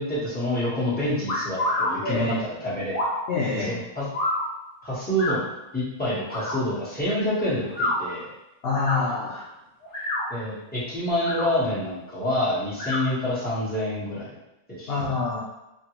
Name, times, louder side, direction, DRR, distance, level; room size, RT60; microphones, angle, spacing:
voice 1, 0.0-2.9 3.5-4.1 4.8-5.4 5.7-8.3 10.3-14.3 14.7-14.9, left 1 dB, 5° left, -10 dB, 0.9 m, -27 dB
sound 1, 1.3-1.9 2.9-3.2 4.1-4.4 5.2-5.4 6.3-6.5 7.6-7.9 8.7-9.0 9.8-10.3 11.1-11.5 12.7-13.0, left 1 dB, 40° left, 1.2 m, -27 dB
voice 2, 2.0-2.4 3.3-3.8 8.6-9.5 14.9-15.4, left 4 dB, 80° left, -5 dB, 0.5 m, -26 dB
3.2 x 2.2 x 2.9 m, 0.93 s
omnidirectional pair, 1.6 m